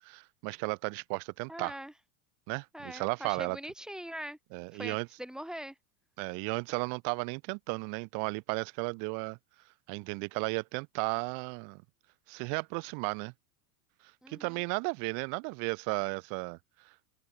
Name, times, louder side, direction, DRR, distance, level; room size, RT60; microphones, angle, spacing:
voice 1, 0.0-1.8 2.5-3.6 4.5-5.1 6.2-9.4 9.9-11.8 12.3-13.3 14.3-16.6 16.8-16.9, right 36 dB, 45° right, 0.7 m, -34 dB
voice 2, 1.5-1.9 2.7-4.4 4.7-5.8 14.2-14.6, equal, ahead, 1.9 m, -42 dB
supercardioid pair, 145°, 45 cm